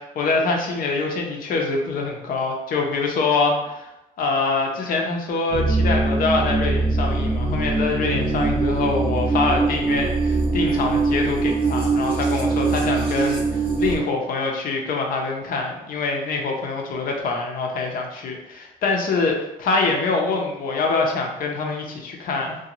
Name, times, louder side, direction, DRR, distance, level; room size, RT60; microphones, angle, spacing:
voice 1, 0.2-3.9 4.2-19.3 19.6-22.6, left 3 dB, 55° left, 1 dB, 0.6 m, -24 dB
sound 1, 5.5-14.0, right 3 dB, 35° right, 0.8 m, -22 dB
2.5 x 2.2 x 2.9 m, 0.90 s
cardioid pair, 110°, 17 cm